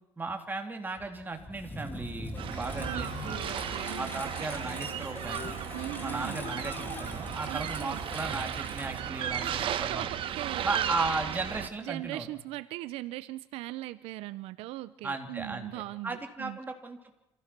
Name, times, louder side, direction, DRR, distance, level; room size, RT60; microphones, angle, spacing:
voice 1, 0.2-3.4 4.0-5.6 6.0-10.1 10.6-12.3 15.0-15.7 16.0-17.0, right 3 dB, 20° right, 4 dB, 3.2 m, -36 dB
Engine, 1.0-9.7, left 1 dB, 20° left, 2.6 m, -43 dB
sound 1, 2.4-11.7, right 10 dB, 60° right, 1.3 m, -35 dB
sound 2, 2.5-7.5, left 11 dB, 75° left, 1.3 m, -46 dB
voice 2, 2.8-4.2 5.7-6.4 7.5-8.0 9.4-10.9 11.8-16.6, right 17 dB, 85° right, 15 dB, 0.7 m, -40 dB
27.0 x 16.0 x 6.0 m, 0.93 s
cardioid pair, 105°, 10 cm